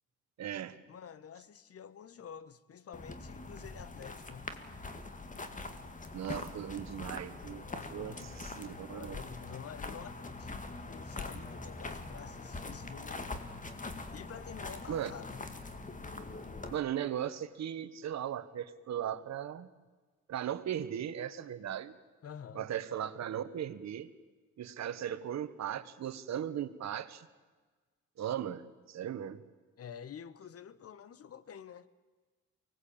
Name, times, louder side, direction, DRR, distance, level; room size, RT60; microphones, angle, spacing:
voice 1, 0.4-0.8 6.1-7.6 7.9-9.2 14.9-15.1 16.7-19.7 20.3-21.9 22.5-24.1 24.6-27.3 28.2-29.4, right 10 dB, 65° right, 1.4 m, -37 dB
voice 2, 0.9-4.6 7.7-13.4 14.1-15.5 22.2-22.7 29.8-31.9, left 8 dB, 50° left, 1.3 m, -49 dB
sound 1, 2.9-16.8, left 3 dB, 25° left, 2.1 m, -43 dB
24.0 x 18.5 x 8.7 m
cardioid pair, 90°, 30 cm